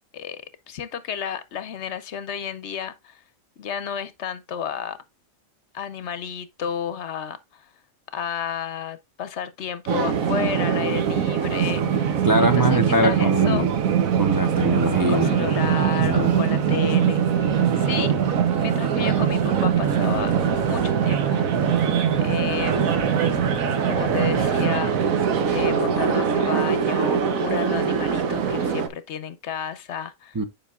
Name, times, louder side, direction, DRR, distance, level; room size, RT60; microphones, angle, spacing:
voice 1, 0.1-3.2 3.6-5.0 5.7-7.7 8.1-12.1 12.4-13.7 15.1-17.5 17.7-18.2 18.6-20.3 20.6-21.5 22.2-22.9 23.8-25.1 25.5-30.4, left 8 dB, 65° left, 0.9 m, -32 dB
sound 1, 9.9-28.9, right 7 dB, 90° right, 1.3 m, -22 dB
voice 2, 12.2-13.7 14.2-15.3 16.0-16.4 30.3-30.4, right 1 dB, 35° right, 0.3 m, -22 dB
9.9 x 5.2 x 2.3 m
omnidirectional pair, 1.4 m